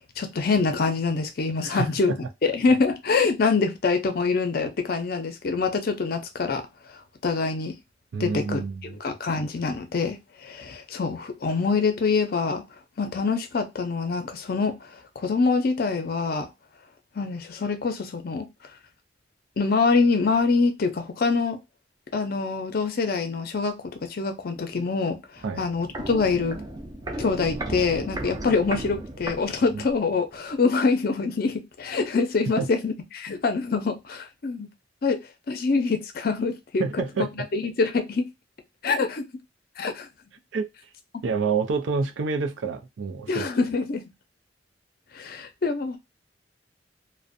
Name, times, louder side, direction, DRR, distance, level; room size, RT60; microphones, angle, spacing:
voice 1, 0.2-2.1 2.4-6.6 7.2-7.8 8.2-8.6 9.0-12.6 13.0-14.8 15.2-16.5 17.2-18.5 19.6-21.6 22.1-25.2 25.6-26.6 27.2-34.7 35.0-35.2 35.5-36.8 37.5-38.3 38.8-39.2 39.8-40.1 43.3-44.0 45.1-46.0, left 4 dB, 50° left, 0.5 m, -25 dB
voice 2, 1.6-2.2 8.1-9.0 25.4-25.7 29.7-29.8 32.6-32.7 36.8-37.5 40.5-40.7 41.2-43.5, right 4 dB, 90° right, 0.4 m, -28 dB
Walk footsteps, 25.4-30.1 30.3-30.4, right 1 dB, 20° right, 0.4 m, -35 dB
2.5 x 2.1 x 2.5 m
head